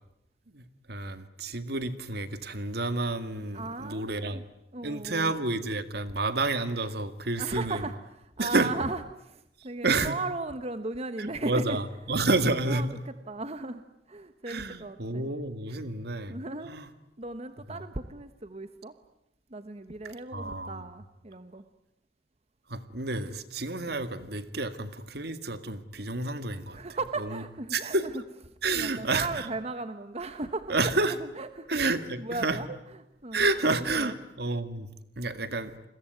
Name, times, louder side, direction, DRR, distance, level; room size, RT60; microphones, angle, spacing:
voice 1, 0.9-4.5 4.8-7.8 8.4-8.7 9.8-10.1 11.2-12.8 14.5-16.4 16.6-16.9 17.7-17.8 20.3-20.8 22.7-26.8 27.7-28.1 28.6-29.5 30.7-31.1 31.7-32.6 33.3-34.9 35.2-35.7, right 2 dB, 60° right, 11 dB, 2.0 m, -29 dB
voice 2, 3.5-4.4 4.7-5.3 7.4-11.8 12.4-13.8 14.1-15.3 15.7-15.9 16.3-16.8 17.2-18.9 19.5-21.6 26.7-28.1 28.7-30.9 31.2-33.4 33.9-34.2, right 2 dB, 35° right, 10 dB, 1.2 m, -37 dB
29.0 x 21.5 x 9.4 m, 0.84 s
head